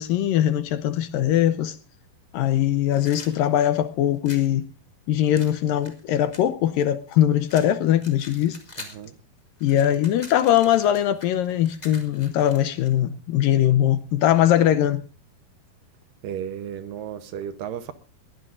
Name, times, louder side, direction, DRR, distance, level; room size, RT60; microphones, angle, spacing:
voice 1, 0.0-1.8 2.3-4.7 5.1-8.9 9.6-15.0, left 11 dB, 75° left, 2.2 m, -21 dB
sound 1, 2.9-4.5 5.3-7.1 7.5-9.1 9.4-12.9, left 2 dB, 10° left, 2.2 m, -44 dB
voice 2, 8.8-9.1 16.2-17.9, right 9 dB, 70° right, 2.3 m, -34 dB
22.0 x 16.0 x 2.5 m
omnidirectional pair, 4.5 m